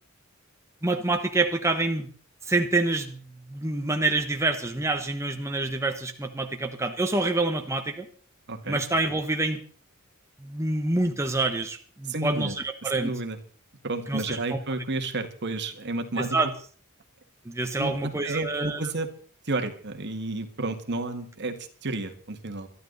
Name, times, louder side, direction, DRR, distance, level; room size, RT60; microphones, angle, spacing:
voice 1, 0.8-2.1 2.4-3.2 3.5-8.1 8.7-9.6 10.4-13.1 14.1-14.6 16.2-16.5 17.4-18.8, right 2 dB, 15° right, 4 dB, 1.1 m, -27 dB
voice 2, 8.5-8.8 12.1-12.6 12.8-13.4 13.8-16.4 17.8-19.1 19.4-22.7, right 2 dB, 55° right, 7 dB, 2.0 m, -31 dB
21.5 x 13.0 x 4.1 m, 0.44 s
head